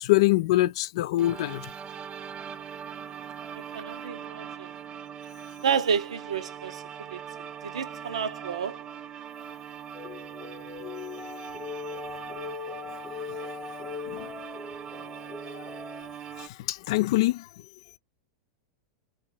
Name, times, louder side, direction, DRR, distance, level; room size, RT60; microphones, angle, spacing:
voice 1, 0.0-1.7 14.1-14.3 15.5-15.7 16.4-17.5, left 17 dB, 65° left, 0.3 m, -24 dB
sound 1, 1.2-16.5, right 8 dB, 30° right, 0.4 m, -41 dB
voice 2, 3.7-4.7 5.6-8.8, right 7 dB, 80° right, 0.7 m, -31 dB
sound 2, 9.9-16.0, left 7 dB, 25° left, 0.8 m, -40 dB
3.2 x 2.5 x 3.1 m
hypercardioid pair, 100°, 3 cm